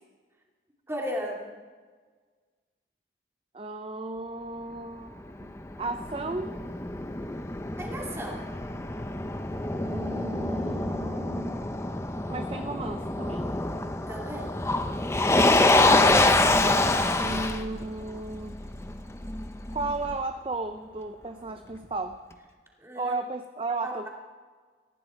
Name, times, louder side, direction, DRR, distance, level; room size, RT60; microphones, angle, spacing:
voice 1, 0.9-1.6 7.8-8.4 14.1-14.5 22.8-23.2 23.8-24.1, equal, 15° right, -1 dB, 2.5 m, -35 dB
voice 2, 3.5-6.6 9.8-11.6 12.3-13.6 17.2-18.6 19.7-22.2 23.0-24.1, right 2 dB, 30° right, 7 dB, 0.6 m, -34 dB
Motor vehicle (road), 5.1-20.1, left 2 dB, 15° left, 0.7 m, -26 dB
19.0 x 14.0 x 4.5 m, 1.5 s
head